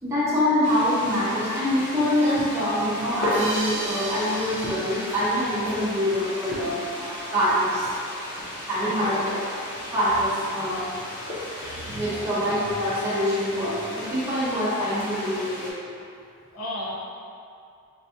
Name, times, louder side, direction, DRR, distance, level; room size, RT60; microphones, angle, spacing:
voice 1, 0.0-7.9 8.7-9.3 9.6-10.9 11.5-15.7, equal, 15° right, -10 dB, 1.0 m, -25 dB
sound 1, 0.6-15.7, left 1 dB, 40° left, 0.7 m, -35 dB
sound 2, 3.3-6.6, right 1 dB, 60° right, 0.7 m, -36 dB
voice 2, 11.9-12.3 16.5-16.9, left 1 dB, 90° left, -6 dB, 0.6 m, -34 dB
4.6 x 2.1 x 2.8 m, 2.5 s
head